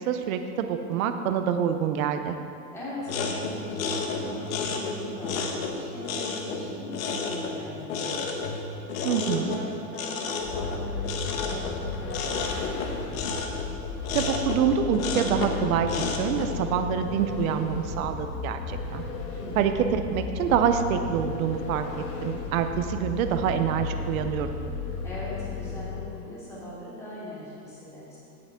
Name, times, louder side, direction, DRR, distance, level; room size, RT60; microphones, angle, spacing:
voice 1, 0.1-2.4 9.0-9.5 14.1-19.0 19.6-21.8 22.2-24.5, right 8 dB, 55° right, 8 dB, 0.8 m, -26 dB
voice 2, 2.7-8.3 9.2-13.1 19.3-19.7 25.0-28.2, left 1 dB, 5° left, -10 dB, 2.7 m, -40 dB
sound 1, 3.0-16.6, left 4 dB, 55° left, 1.2 m, -32 dB
Vehicle, 10.4-26.3, left 4 dB, 85° left, 1.5 m, -34 dB
16.5 x 6.0 x 3.7 m, 2.5 s
supercardioid pair, 165°, 49 cm